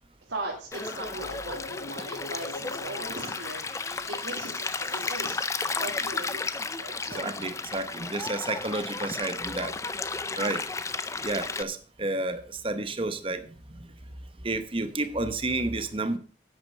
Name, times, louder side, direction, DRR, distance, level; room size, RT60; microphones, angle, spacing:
voice 1, 0.3-7.4 10.1-10.5 14.0-14.1, right 2 dB, 70° right, -2 dB, 2.5 m, -39 dB
sound 1, 0.7-6.4, left 3 dB, 80° left, 1.4 m, -44 dB
Stream, 0.7-11.6, left 4 dB, 15° left, 0.5 m, -33 dB
voice 2, 7.1-9.7 10.4-10.6 11.2-13.8 14.4-16.2, right 2 dB, 30° right, 10 dB, 1.0 m, -31 dB
9.7 x 8.8 x 5.4 m, 0.40 s
head